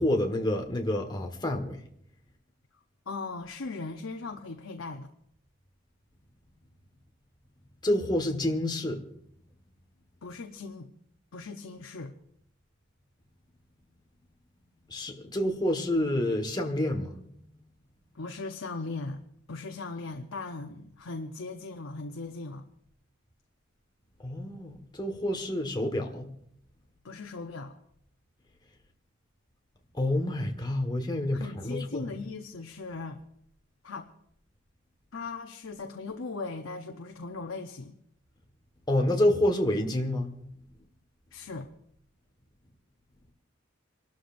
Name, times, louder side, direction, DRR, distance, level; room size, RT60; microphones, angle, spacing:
voice 1, 0.0-1.8 7.8-9.0 14.9-17.2 24.2-26.3 29.9-32.0 38.9-40.3, left 1 dB, 20° left, 1.6 m, -28 dB
voice 2, 3.1-5.1 10.2-10.9 11.3-12.1 18.1-19.2 19.5-22.6 27.0-27.8 31.3-33.2 33.8-34.1 35.1-38.0 41.3-41.7, left 3 dB, 80° left, 0.8 m, -38 dB
28.5 x 12.5 x 2.6 m
head